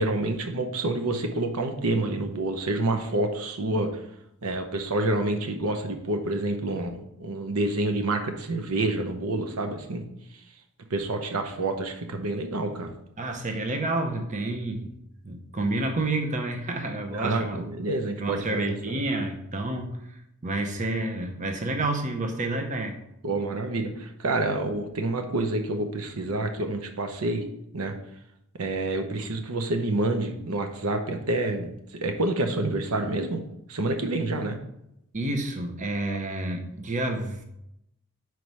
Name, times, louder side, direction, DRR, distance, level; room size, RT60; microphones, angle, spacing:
voice 1, 0.0-3.9 4.4-10.0 10.9-12.9 17.1-19.0 23.2-27.4 27.7-27.9 28.6-33.4 33.7-34.6 36.1-36.2, right 2 dB, 85° right, 5 dB, 0.8 m, -28 dB
voice 2, 13.2-14.9 15.2-17.7 18.2-20.0 20.4-22.9 35.1-37.4, right 2 dB, 35° right, 4 dB, 0.7 m, -29 dB
4.7 x 4.6 x 5.4 m, 0.81 s
head